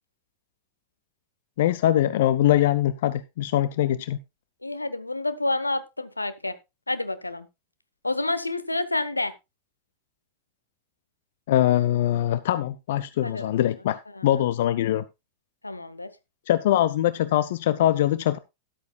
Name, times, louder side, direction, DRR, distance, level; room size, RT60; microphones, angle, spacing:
voice 1, 1.6-4.2 11.5-15.0 16.5-18.4, left 12 dB, 55° left, 15 dB, 0.5 m, -22 dB
voice 2, 4.6-6.5 6.9-7.5 8.0-9.3 13.2-13.5 14.1-14.4 15.6-16.1, left 2 dB, 85° left, 14 dB, 0.9 m, -29 dB
13.0 x 11.5 x 2.3 m, 0.23 s
figure-of-eight pair, 90°, 0 cm